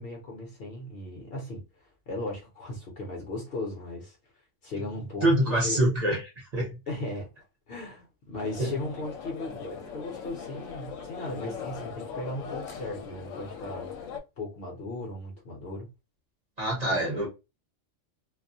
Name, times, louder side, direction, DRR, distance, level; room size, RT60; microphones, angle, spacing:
voice 1, 0.0-4.2 4.6-5.8 6.9-7.3 7.7-13.9 14.4-15.9, left 2 dB, 55° left, 0.8 m, -37 dB
voice 2, 5.2-6.8 8.6-8.7 16.6-17.3, right 1 dB, 35° right, 0.8 m, -25 dB
sound 1, 8.4-14.2, left 6 dB, 80° left, 0.9 m, -40 dB
2.4 x 2.1 x 2.6 m
omnidirectional pair, 1.3 m